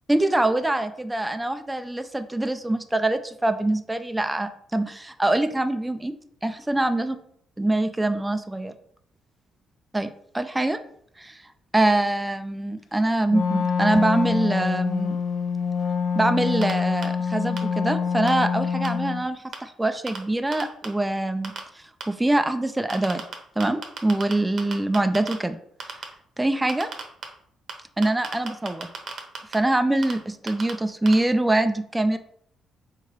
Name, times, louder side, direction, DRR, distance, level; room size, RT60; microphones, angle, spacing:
voice 1, 0.1-6.1 6.4-7.2 7.6-8.7 9.9-10.8 11.2-11.4 11.7-15.2 16.1-23.2 23.6-25.6 26.4-26.9 28.0-28.9 29.5-32.2, right 1 dB, 10° right, 9 dB, 0.4 m, -24 dB
Wind instrument woodwind instrument, 13.3-19.2, left 6 dB, 75° left, 0.7 m, -25 dB
sound 1, 16.6-16.7 17.0-17.1 17.6-17.7 18.3-18.4 18.8-18.9 19.5-19.6 20.1-20.2 20.5-20.9 21.4-21.6 22.0-22.1 22.9-23.3 23.6-24.3 24.6-25.3 25.8-26.0 26.7-27.2 27.7-27.8 28.0-29.5 30.0-30.1 30.5-30.7 31.1-31.2, right 6 dB, 60° right, 0.9 m, -32 dB
3.7 x 3.2 x 4.6 m, 0.66 s
cardioid pair, 90°, 0 cm